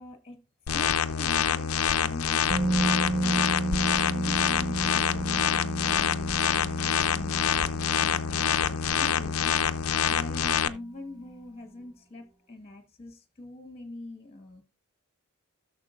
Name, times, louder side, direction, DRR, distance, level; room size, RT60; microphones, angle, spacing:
voice 1, 0.0-2.9 3.2-3.5 4.1-9.6 10.1-14.6, left 2 dB, 25° left, 1.5 m, -45 dB
sound 1, 0.7-10.7, left 8 dB, 80° left, 0.5 m, -26 dB
Musical instrument, 2.5-10.4 10.7-10.8, right 2 dB, 20° right, 0.8 m, -33 dB
15.5 x 6.6 x 2.5 m
head